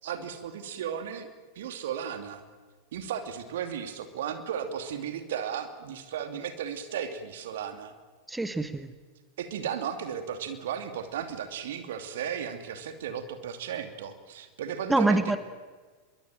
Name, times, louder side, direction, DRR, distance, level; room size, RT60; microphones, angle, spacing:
voice 1, 0.0-1.3 1.6-2.4 2.9-7.9 9.4-15.4, right 8 dB, 55° right, 8 dB, 2.6 m, -35 dB
voice 2, 8.3-8.9 14.9-15.4, right 2 dB, 5° right, 11 dB, 1.3 m, -25 dB
24.5 x 23.0 x 9.1 m, 1.4 s
figure-of-eight pair, 90°, 0 cm